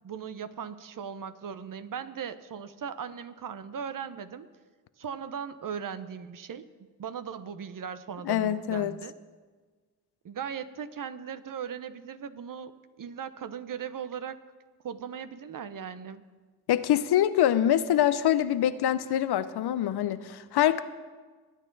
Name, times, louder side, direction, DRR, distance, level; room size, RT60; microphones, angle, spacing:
voice 1, 0.0-4.5 5.0-6.7 7.0-9.1 10.2-12.7 13.0-14.4 14.8-16.2, right 7 dB, 55° right, 13 dB, 0.8 m, -38 dB
voice 2, 8.2-8.9 16.7-20.8, left 11 dB, 75° left, 14 dB, 0.7 m, -25 dB
21.0 x 9.1 x 4.0 m, 1.4 s
cardioid pair, 65°, 40 cm